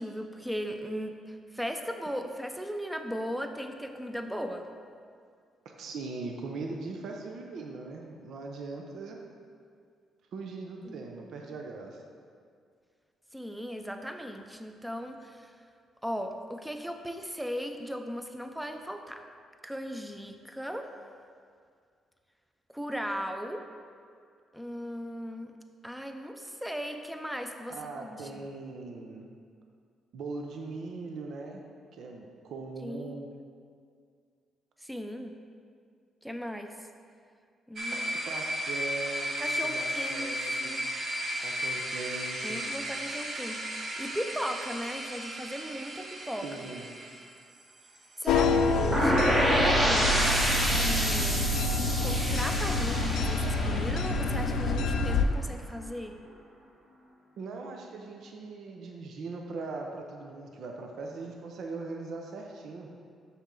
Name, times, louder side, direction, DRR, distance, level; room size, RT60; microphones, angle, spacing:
voice 1, 0.0-4.7 10.9-11.0 13.3-15.5 16.0-19.2 19.6-20.9 22.7-23.6 24.5-25.5 25.8-27.8 28.0-28.5 32.8-33.2 34.8-35.4 36.2-36.8 37.7-38.3 39.4-40.8 42.4-46.5 48.2-50.1 50.7-51.5 52.0-56.2, equal, 5° right, 5 dB, 0.5 m, -37 dB
voice 2, 5.8-9.2 10.3-12.0 27.7-29.3 30.1-31.6 31.9-33.3 37.9-39.3 39.6-40.8 41.4-42.6 46.4-46.9 48.2-49.3 57.4-62.9, right 3 dB, 70° right, 2 dB, 0.7 m, -40 dB
sound 1, 37.8-50.4, equal, 45° right, 1.0 m, -35 dB
sound 2, 48.3-55.3, left 3 dB, 90° left, 0.4 m, -27 dB
sound 3, 48.9-54.8, equal, 30° right, 1.8 m, -28 dB
7.0 x 5.7 x 3.8 m, 2.2 s
cardioid pair, 90°, 0 cm